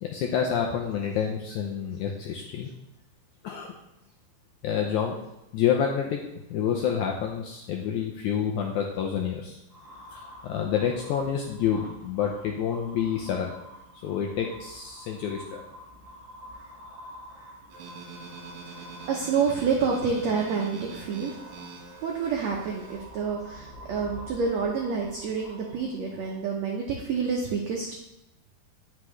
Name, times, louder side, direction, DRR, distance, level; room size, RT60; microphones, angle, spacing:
voice 1, 0.0-2.7 3.4-3.8 4.6-5.2 5.5-6.2 6.5-9.6 10.1-13.5 14.0-15.6, left 8 dB, 80° left, 1 dB, 1.7 m, -28 dB
sound 1, 9.7-26.8, equal, 50° right, 0.9 m, -48 dB
sound 2, 17.7-23.0, right 4 dB, 65° right, 2.6 m, -44 dB
voice 2, 18.8-21.4 22.0-28.0, right 5 dB, 80° right, 0 dB, 1.5 m, -28 dB
9.7 x 5.7 x 3.1 m, 0.88 s
omnidirectional pair, 4.1 m